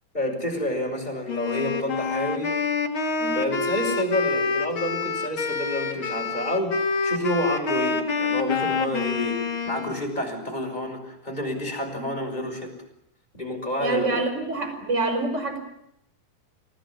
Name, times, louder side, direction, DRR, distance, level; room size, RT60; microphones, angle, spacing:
voice 1, 0.1-2.5 3.3-12.7 13.3-14.2, left 1 dB, 10° left, 1 dB, 6.0 m, -29 dB
Wind instrument woodwind instrument, 1.3-10.0, left 4 dB, 35° left, 3.0 m, -27 dB
voice 2, 13.8-15.6, right 2 dB, 20° right, 7 dB, 5.1 m, -27 dB
29.0 x 17.5 x 9.8 m, 0.76 s
omnidirectional pair, 4.4 m